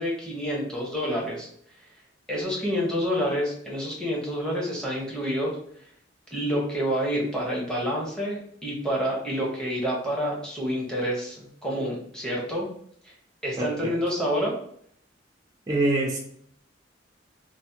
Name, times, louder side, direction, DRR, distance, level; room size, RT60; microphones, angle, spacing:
voice 1, 0.0-1.5 2.3-5.6 6.3-12.7 13.0-13.1 13.4-14.5, equal, 5° left, -3 dB, 0.8 m, -28 dB
voice 2, 13.6-13.9 15.7-16.2, right 2 dB, 20° right, -3 dB, 0.4 m, -25 dB
3.2 x 2.1 x 2.7 m, 0.64 s
head